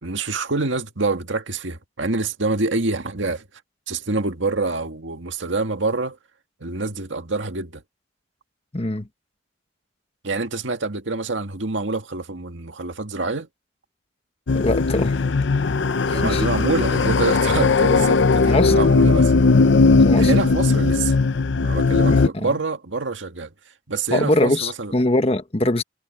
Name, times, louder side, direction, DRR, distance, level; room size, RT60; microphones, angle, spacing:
voice 1, 0.0-3.4 3.9-6.2 6.6-7.8 10.2-13.5 16.1-19.3 20.2-21.1 21.6-23.5 23.9-24.9, right 3 dB, 85° right, 1.9 m, -26 dB
voice 2, 8.7-9.1 14.5-15.2 16.1-16.4 18.5-18.7 20.1-20.3 22.1-22.5 24.1-25.8, left 1 dB, 30° left, 1.3 m, -22 dB
sound 1, 14.5-22.3, left 3 dB, 75° left, 0.6 m, -18 dB
head